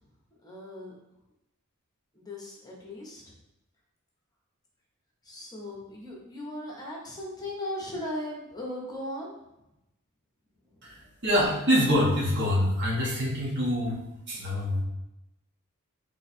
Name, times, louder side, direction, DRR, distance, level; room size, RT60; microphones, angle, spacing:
voice 1, 0.4-0.9 2.1-3.3 5.2-9.3 10.7-11.1, left 1 dB, 15° left, -3 dB, 0.8 m, -38 dB
voice 2, 10.8-14.0 14.3-14.8, equal, 50° right, -4 dB, 1.2 m, -25 dB
3.3 x 3.1 x 4.2 m, 0.89 s
head